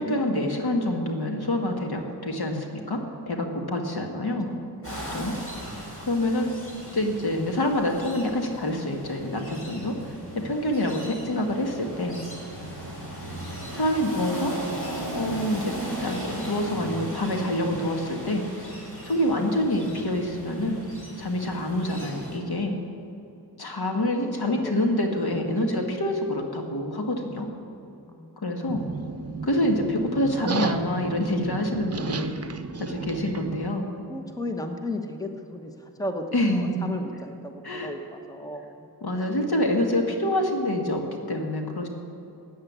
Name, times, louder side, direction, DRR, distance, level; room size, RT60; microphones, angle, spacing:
voice 1, 0.0-4.5 5.1-5.4 6.1-6.5 6.9-10.0 10.3-12.2 13.7-14.5 15.1-15.7 16.0-18.4 19.1-20.8 21.2-22.8 23.6-27.5 28.4-28.8 29.4-32.3 32.8-33.8 36.3-36.8 37.6-37.9 39.0-41.9, left 1 dB, 70° left, 3 dB, 2.0 m, -26 dB
voice 2, 4.1-5.2 11.0-11.2 23.9-24.7 25.1-25.2 28.1-29.5 34.1-38.9 39.1-39.4, left 1 dB, 10° left, 5 dB, 1.1 m, -37 dB
sound 1, 4.8-22.4, right 1 dB, 35° left, 4.6 m, -38 dB
sound 2, 28.7-33.7, right 4 dB, 40° right, 0.8 m, -33 dB
15.5 x 9.3 x 8.3 m, 2.8 s
wide cardioid pair, 110°, 39 cm